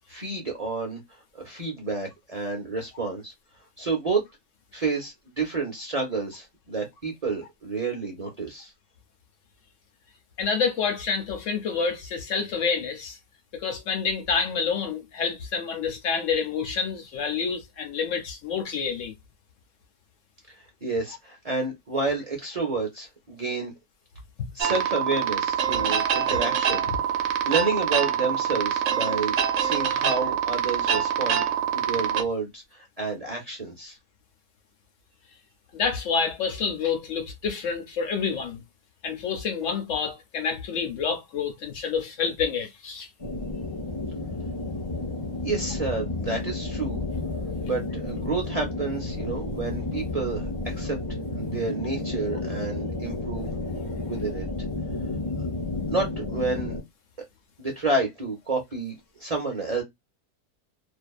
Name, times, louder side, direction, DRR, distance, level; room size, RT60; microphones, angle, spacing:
voice 1, 0.1-1.0 1.3-3.3 3.8-4.2 4.7-8.7 20.5-23.7 24.5-26.9 27.1-31.4 31.7-34.0 45.4-47.0 47.6-51.0 51.3-53.8 54.0-54.5 55.9-56.8 57.6-59.8, right 3 dB, 40° right, 0.5 m, -30 dB
voice 2, 10.4-13.2 13.5-19.1 35.7-38.6 39.0-43.1 53.8-53.9, left 5 dB, 60° left, 1.0 m, -28 dB
sound 1, 24.6-32.2, right 8 dB, 65° right, 0.8 m, -25 dB
sound 2, 43.2-56.8, left 2 dB, 25° left, 0.5 m, -31 dB
2.6 x 2.2 x 2.3 m
omnidirectional pair, 1.6 m